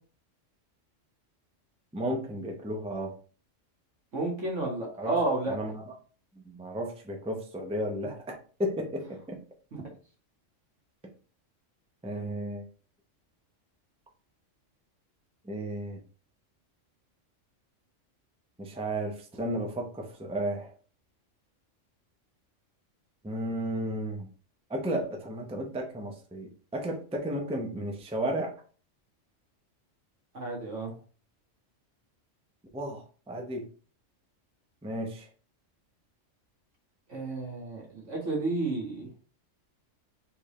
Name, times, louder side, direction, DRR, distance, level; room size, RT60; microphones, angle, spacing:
voice 1, 1.9-3.2 5.0-5.2 5.5-5.9 6.4-9.4 12.0-12.7 15.4-16.0 18.6-20.7 23.2-24.3 24.7-28.6 32.7-33.7 34.8-35.3, right 1 dB, 5° right, 2 dB, 0.5 m, -33 dB
voice 2, 4.1-5.6 9.7-9.8 30.3-30.9 37.1-39.1, right 2 dB, 70° right, -2 dB, 2.0 m, -31 dB
4.4 x 3.4 x 3.2 m, 0.39 s
omnidirectional pair, 1.3 m